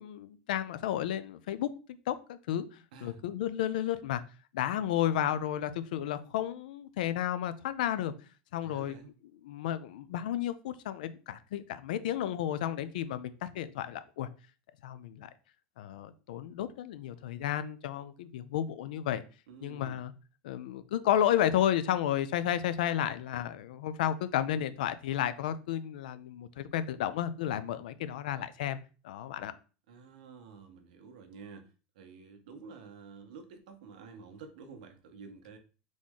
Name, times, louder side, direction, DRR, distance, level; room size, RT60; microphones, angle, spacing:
voice 1, 0.0-1.7 2.1-4.2 4.5-8.1 8.5-9.0 9.4-14.3 14.8-15.3 15.8-19.2 19.6-20.1 20.4-28.8 29.0-29.5, left 11 dB, 75° left, 13 dB, 0.5 m, -32 dB
voice 2, 2.9-3.2 8.6-9.1 19.5-20.0 29.9-35.6, right 5 dB, 70° right, 6 dB, 1.0 m, -50 dB
4.1 x 3.1 x 3.6 m, 0.35 s
supercardioid pair, 180°, 5 cm